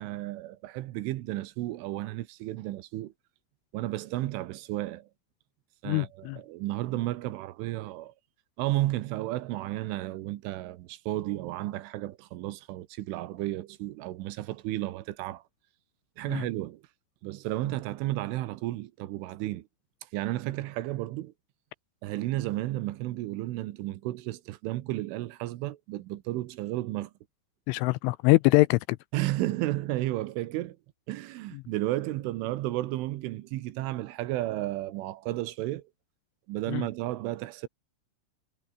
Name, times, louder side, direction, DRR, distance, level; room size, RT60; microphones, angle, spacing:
voice 1, 0.0-3.1 3.7-5.1 5.8-8.1 8.6-15.4 16.2-16.8 17.2-19.7 20.1-21.3 22.0-27.1 29.1-30.8 31.1-35.8 36.5-37.7, right 16 dB, 80° right, 3.5 m, -33 dB
voice 2, 5.9-6.4 16.3-16.4 27.7-29.0 36.7-36.8, left 23 dB, 85° left, 2.9 m, -23 dB
omnidirectional pair, 5.9 m